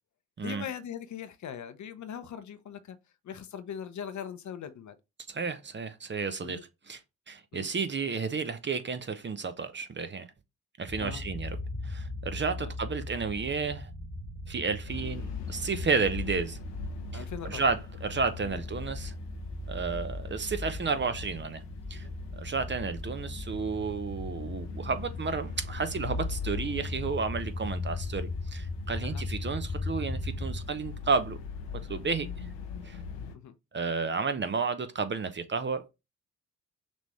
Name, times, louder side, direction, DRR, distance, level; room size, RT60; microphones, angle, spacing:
voice 1, 0.4-3.0 3.2-5.0 6.4-6.6 7.5-7.7 11.0-11.2 12.6-12.7 17.1-17.6 18.4-18.6 21.9-22.1 29.0-29.2 33.3-33.5, left 8 dB, 45° left, 0.7 m, -40 dB
voice 2, 5.3-6.6 6.9-7.0 7.3-10.3 10.8-11.6 11.8-13.9 14.5-16.6 17.1-19.1 19.7-21.6 21.9-31.4 31.9-32.5 32.8-33.0 33.7-35.9, right 5 dB, 30° right, 0.8 m, -32 dB
sound 1, 10.9-30.6, left 2 dB, ahead, 1.6 m, -38 dB
sound 2, 14.9-33.4, left 5 dB, 75° left, 0.8 m, -41 dB
6.2 x 2.7 x 3.2 m
hypercardioid pair, 40°, 40 cm